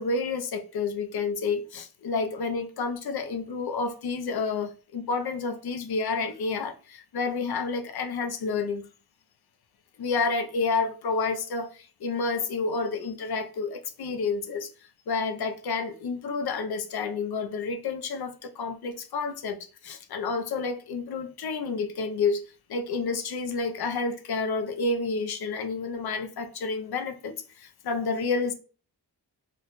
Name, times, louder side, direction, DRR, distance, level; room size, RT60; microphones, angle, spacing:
voice 1, 0.0-8.8 10.0-14.7 15.1-22.4 22.7-28.5, left 4 dB, 65° left, 0.6 m, -30 dB
3.3 x 2.1 x 3.9 m
wide cardioid pair, 120°, 41 cm